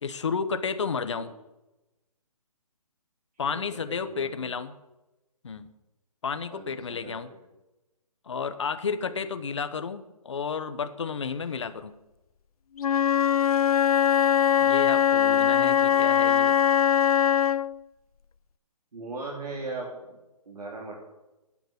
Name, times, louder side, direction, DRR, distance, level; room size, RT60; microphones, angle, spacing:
voice 1, 0.0-1.3 3.4-4.7 5.4-5.7 6.2-7.3 8.2-12.0 14.6-16.6, left 5 dB, 50° left, 10 dB, 1.0 m, -32 dB
voice 2, 3.5-4.5 6.5-7.4 9.1-9.2 15.2-15.9 18.9-19.9 20.5-21.1, right 3 dB, 85° right, -3 dB, 3.7 m, -39 dB
Wind instrument woodwind instrument, 12.8-17.7, left 9 dB, 70° left, 0.4 m, -21 dB
9.4 x 8.6 x 9.6 m, 1.0 s
hypercardioid pair, 175°, 20 cm